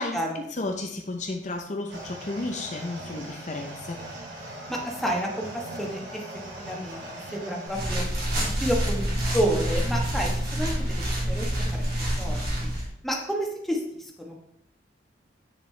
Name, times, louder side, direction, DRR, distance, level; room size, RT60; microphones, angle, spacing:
voice 1, 0.0-4.0, left 2 dB, 40° left, 3 dB, 0.7 m, -33 dB
sound 1, 1.9-7.9, right 1 dB, 85° right, 2.2 m, -40 dB
voice 2, 4.7-6.2 6.6-7.0 7.3-8.0 8.4-11.8 12.2-12.4 13.0-14.4, right 1 dB, ahead, -1 dB, 1.2 m, -30 dB
sound 2, 7.7-12.9, equal, 60° right, 2.5 m, -27 dB
8.1 x 6.8 x 3.3 m, 0.74 s
head